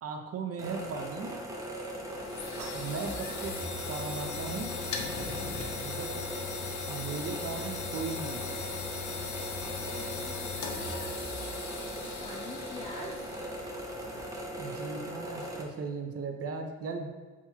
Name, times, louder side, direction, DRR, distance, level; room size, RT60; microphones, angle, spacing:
voice 1, 0.0-1.3 2.7-3.5 3.8-4.7 5.8-6.1 6.9-8.6 14.6-17.1, right 4 dB, 50° right, 4 dB, 0.7 m, -37 dB
sound 1, 0.6-15.6, right 1 dB, 10° right, 0.8 m, -39 dB
sound 2, 1.9-14.7, left 5 dB, 70° left, 0.7 m, -39 dB
sound 3, 2.3-7.8 8.0-8.3 8.6-13.6, right 3 dB, 85° right, 0.8 m, -57 dB
voice 2, 9.6-13.4, left 3 dB, 20° left, 0 dB, 0.4 m, -48 dB
7.2 x 2.9 x 2.3 m, 1.4 s
cardioid pair, 90°, 30 cm